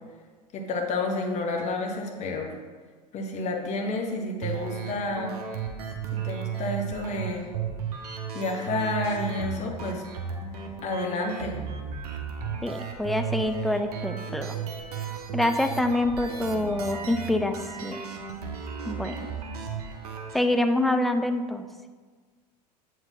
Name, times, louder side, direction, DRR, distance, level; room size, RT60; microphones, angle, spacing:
voice 1, 0.5-2.5 3.1-5.4 6.1-7.5 8.3-10.0 10.8-11.6, left 2 dB, 35° left, 2 dB, 1.2 m, -30 dB
sound 1, 4.4-20.4, right 7 dB, 65° right, 0.9 m, -35 dB
voice 2, 12.6-14.6 15.3-18.0 18.9-19.3 20.3-21.7, left 1 dB, ahead, 7 dB, 0.3 m, -26 dB
7.4 x 4.6 x 4.2 m, 1.5 s
figure-of-eight pair, 80°, 21 cm